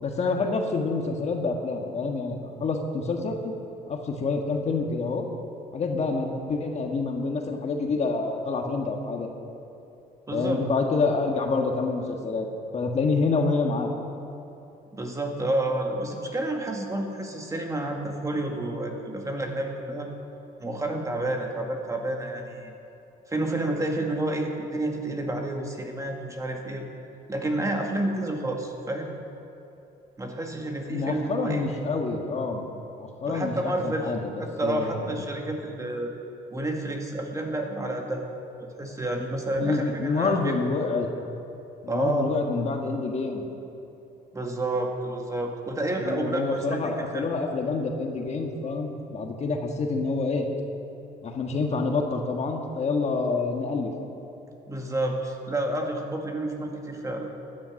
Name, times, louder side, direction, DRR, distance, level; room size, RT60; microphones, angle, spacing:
voice 1, 0.0-3.5 3.9-5.3 5.7-9.3 10.3-12.5 12.7-13.9 30.9-32.6 33.0-35.2 39.6-41.1 41.8-43.5 46.0-50.5 51.2-53.9, left 4 dB, 40° left, 3 dB, 1.6 m, -27 dB
voice 2, 10.3-10.6 14.9-20.1 20.6-22.7 23.3-26.9 27.3-29.1 30.2-31.7 33.3-34.1 34.4-36.1 36.5-38.2 38.8-40.5 41.9-42.4 44.3-47.3 54.7-57.3, right 1 dB, 20° right, 2 dB, 2.0 m, -29 dB
16.0 x 10.5 x 6.5 m, 2.9 s
cardioid pair, 110°, 17 cm